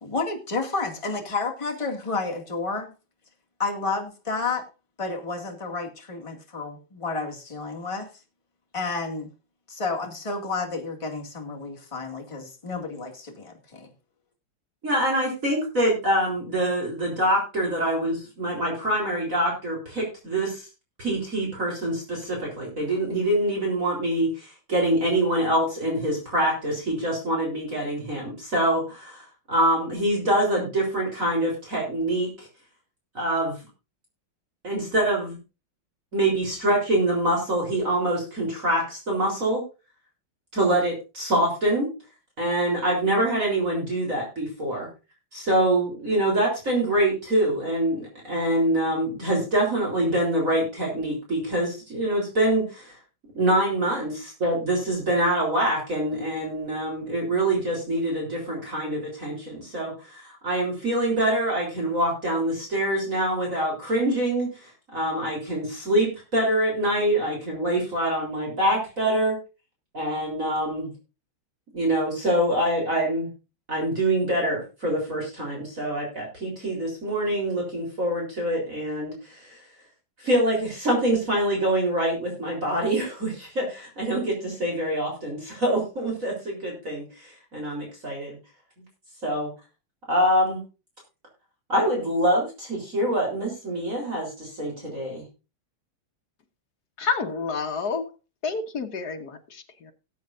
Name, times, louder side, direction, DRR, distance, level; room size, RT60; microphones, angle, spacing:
voice 1, 0.0-2.9 3.6-4.6 5.0-8.1 8.7-9.3 9.7-13.9, left 3 dB, 15° left, 1 dB, 2.1 m, -31 dB
voice 2, 14.8-20.6 21.0-32.5 33.1-33.6 34.6-35.4 36.1-39.6 40.5-41.9 42.4-44.9 45.3-53.0 53.4-69.4 69.9-70.9 71.7-73.3 73.7-79.6 80.2-88.4 89.2-89.5 90.1-90.6 91.7-95.2, right 1 dB, 40° right, -2 dB, 4.2 m, -25 dB
voice 3, 97.0-98.1 98.4-99.9, left 5 dB, 50° left, 5 dB, 2.0 m, -29 dB
19.0 x 8.4 x 2.6 m, 0.30 s
omnidirectional pair, 2.3 m